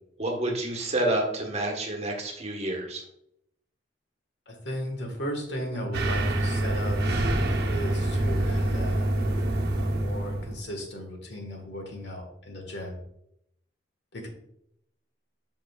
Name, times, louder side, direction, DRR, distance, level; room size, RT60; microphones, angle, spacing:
voice 1, 0.2-3.0, right 1 dB, 35° right, 1 dB, 1.3 m, -29 dB
voice 2, 4.5-7.0 7.7-9.1 9.8-13.0 14.1-14.3, equal, 65° left, 2 dB, 1.6 m, -36 dB
sound 1, 5.9-10.6, right 1 dB, 60° right, 0.9 m, -26 dB
8.2 x 5.5 x 2.4 m, 0.76 s
head